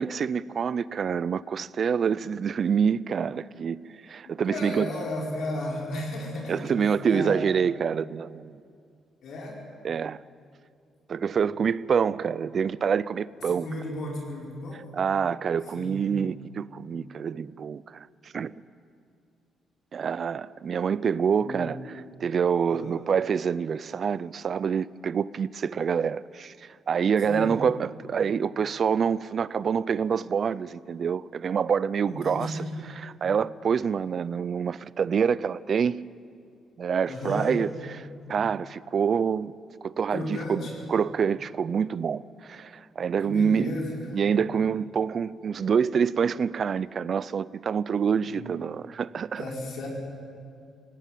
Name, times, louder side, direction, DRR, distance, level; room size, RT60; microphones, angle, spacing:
voice 1, 0.0-3.8 4.0-4.9 6.5-8.6 9.8-10.2 11.1-13.7 14.9-18.6 19.9-36.0 36.8-39.5 39.8-43.7 44.1-49.4, right 7 dB, 50° right, 0.5 m, -27 dB
voice 2, 4.2-6.8 7.1-7.4 9.2-9.6 13.4-14.8 15.7-16.0 21.4-21.9 22.7-22.9 27.3-27.6 32.0-32.7 37.1-37.5 40.1-40.8 43.2-44.2 48.3-48.5 49.4-49.9, left 1 dB, 70° left, 4.6 m, -34 dB
18.0 x 17.5 x 9.2 m
cardioid pair, 100°, 0 cm